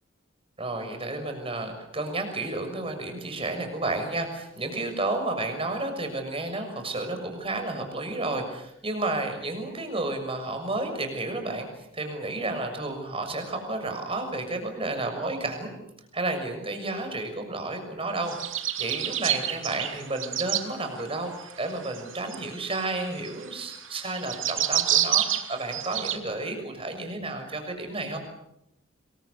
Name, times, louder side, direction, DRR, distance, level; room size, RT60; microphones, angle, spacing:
voice 1, 0.6-11.7 11.9-15.8 16.1-18.3 18.8-28.2, right 2 dB, 30° right, 5 dB, 6.6 m, -31 dB
sound 1, 18.3-20.7 21.4-26.2, right 11 dB, 80° right, 2.7 m, -28 dB
26.5 x 23.0 x 8.3 m, 0.81 s
head